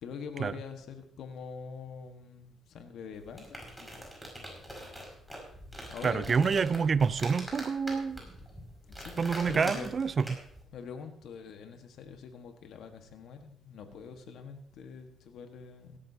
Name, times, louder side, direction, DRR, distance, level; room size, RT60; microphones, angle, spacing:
voice 1, 0.0-4.1 4.4-4.7 5.9-6.9 9.0-9.9 10.7-16.0, left 6 dB, 75° left, 6 dB, 1.5 m, -44 dB
sound 1, 3.1-10.6, equal, ahead, 5.6 m, -44 dB
voice 2, 6.0-8.2 9.2-10.2, right 5 dB, 45° right, 17 dB, 0.5 m, -27 dB
17.0 x 13.0 x 2.8 m, 0.65 s
cardioid pair, 90°, 0 cm